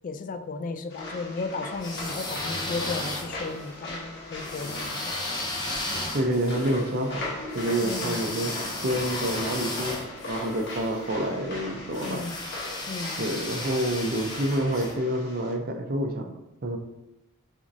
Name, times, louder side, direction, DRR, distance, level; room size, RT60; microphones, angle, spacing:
voice 1, 0.0-5.1 7.8-8.2 12.0-12.4 12.9-13.2, left 3 dB, 40° left, 9 dB, 0.3 m, -35 dB
sound 1, 0.9-15.5, left 2 dB, 55° left, 1.1 m, -39 dB
sound 2, 1.7-3.6 4.4-10.8 11.9-14.9, left 2 dB, 20° left, 0.7 m, -34 dB
voice 2, 6.1-10.0 10.2-12.2 13.2-16.3 16.6-16.8, right 1 dB, 45° right, 4 dB, 0.6 m, -28 dB
6.0 x 2.6 x 2.6 m, 0.91 s
head